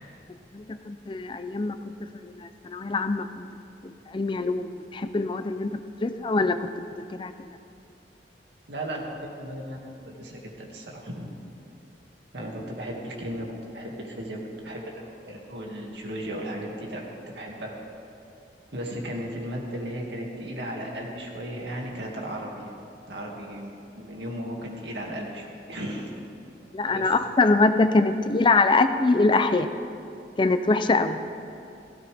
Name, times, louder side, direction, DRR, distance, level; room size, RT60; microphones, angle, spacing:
voice 1, 0.5-1.8 2.2-3.4 3.8-5.7 6.0-6.7 7.2-7.3 26.7-29.7 30.4-31.2, left 3 dB, 30° left, 10 dB, 0.4 m, -23 dB
voice 2, 8.7-9.8 10.2-11.3 12.3-13.5 13.7-14.4 14.6-14.8 15.2-17.7 18.7-22.7 23.1-23.7 24.0-26.1 26.9-27.1, equal, 75° right, -1 dB, 2.1 m, -35 dB
16.5 x 15.0 x 3.4 m, 2.6 s
head